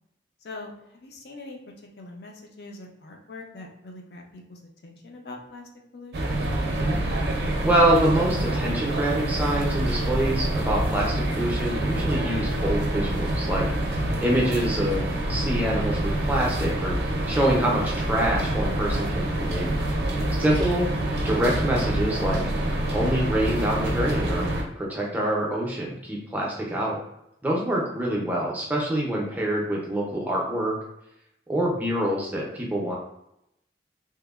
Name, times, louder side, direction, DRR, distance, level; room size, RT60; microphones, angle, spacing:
voice 1, 0.4-1.6 2.0-6.4, left 2 dB, 65° left, 1 dB, 0.4 m, -43 dB
sound 1, 6.1-24.6, right 1 dB, 65° right, 0.4 m, -26 dB
voice 2, 7.6-13.9 14.2-17.0 17.3-19.7 20.4-20.9 21.2-22.4 22.9-24.5 24.8-27.0 27.4-30.8 31.5-32.9, right 1 dB, 10° right, -3 dB, 0.4 m, -25 dB
2.8 x 2.0 x 2.3 m, 0.81 s
head